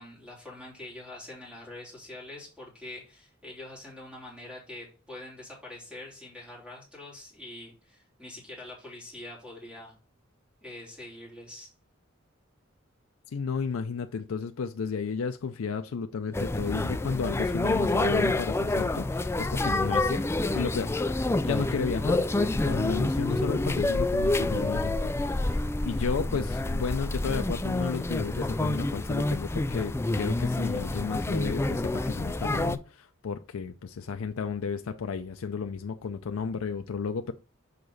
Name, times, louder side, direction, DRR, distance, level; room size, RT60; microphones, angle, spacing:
voice 1, 0.0-10.0 10.6-11.7, left 1 dB, 5° right, 3.2 m, -44 dB
voice 2, 13.3-20.2 20.5-37.3, left 5 dB, 85° left, 0.4 m, -33 dB
sound 1, 16.3-32.8, left 2 dB, 10° left, 0.3 m, -28 dB
6.7 x 4.7 x 3.9 m
head